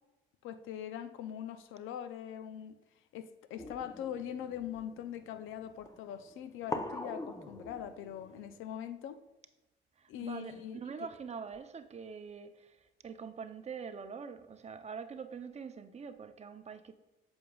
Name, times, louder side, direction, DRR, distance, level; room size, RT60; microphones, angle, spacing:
voice 1, 0.4-2.8 3.1-9.2 10.1-10.8, left 10 dB, 90° left, 11 dB, 0.5 m, -42 dB
sound 1, 3.6-8.6, left 1 dB, 15° left, 0.7 m, -44 dB
voice 2, 10.0-16.9, right 6 dB, 35° right, 9 dB, 0.6 m, -44 dB
8.4 x 7.0 x 2.3 m, 1.0 s
cardioid pair, 90°, 20 cm